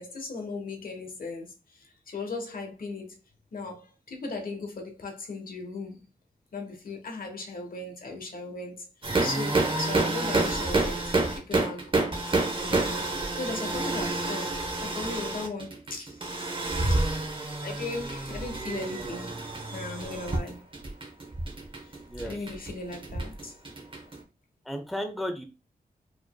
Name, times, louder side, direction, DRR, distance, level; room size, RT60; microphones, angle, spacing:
voice 1, 0.0-3.1 3.5-6.0 6.5-8.9 9.2-12.1 12.5-13.1 13.3-16.5 17.2-17.3 17.6-19.3 19.7-20.6 21.8-23.5, left 3 dB, 70° left, 1.1 m, -37 dB
sound 1, 9.0-24.2, right 2 dB, 35° right, 0.9 m, -29 dB
voice 2, 24.7-25.4, equal, ahead, 0.7 m, -34 dB
4.8 x 3.0 x 2.2 m
wide cardioid pair, 95°, 15 cm